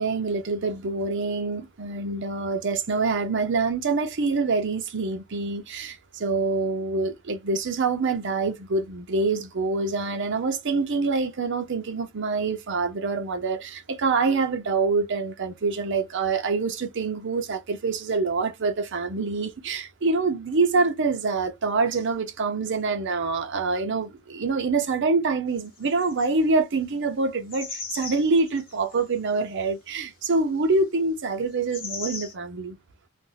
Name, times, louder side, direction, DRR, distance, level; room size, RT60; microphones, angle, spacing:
voice 1, 0.0-32.8, right 3 dB, 55° right, 0.6 m, -26 dB
sound 1, 25.6-26.3 27.5-29.0 31.5-32.3, left 4 dB, 40° left, 0.8 m, -37 dB
2.5 x 2.1 x 3.8 m
head